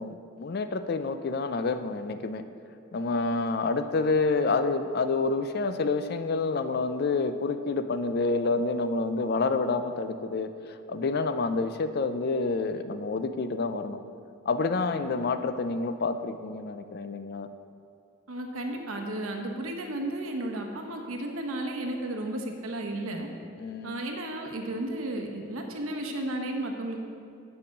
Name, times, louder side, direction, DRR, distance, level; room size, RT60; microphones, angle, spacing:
voice 1, 0.0-2.4 2.9-10.5 10.9-14.0 14.5-17.5 23.6-24.0, left 3 dB, 50° left, 10 dB, 0.4 m, -28 dB
voice 2, 18.3-23.3 23.8-27.0, right 1 dB, 90° right, 3 dB, 1.0 m, -33 dB
6.7 x 5.6 x 7.3 m, 2.4 s
head